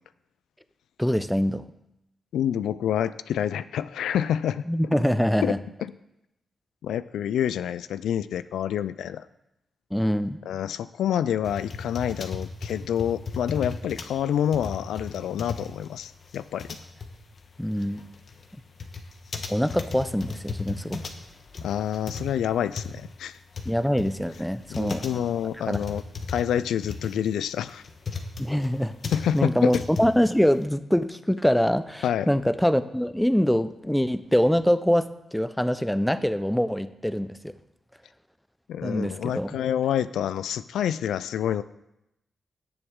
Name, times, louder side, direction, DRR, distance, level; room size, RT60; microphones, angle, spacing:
voice 1, 1.0-1.7 4.7-5.6 9.9-10.4 17.6-18.0 19.5-21.0 23.7-25.2 25.7-25.8 28.4-28.9 29.3-37.5 38.8-39.6, equal, 5° left, 12 dB, 0.8 m, -24 dB
voice 2, 2.3-4.6 5.4-5.5 5.8-5.9 6.8-9.2 10.5-16.7 21.6-23.3 24.7-26.0 26.3-27.8 29.1-29.7 32.0-32.3 38.7-41.6, left 9 dB, 85° left, 14 dB, 0.3 m, -27 dB
sound 1, 11.4-30.6, left 4 dB, 60° left, 1.2 m, -36 dB
17.0 x 6.8 x 3.7 m, 0.86 s
supercardioid pair, 45°, 0 cm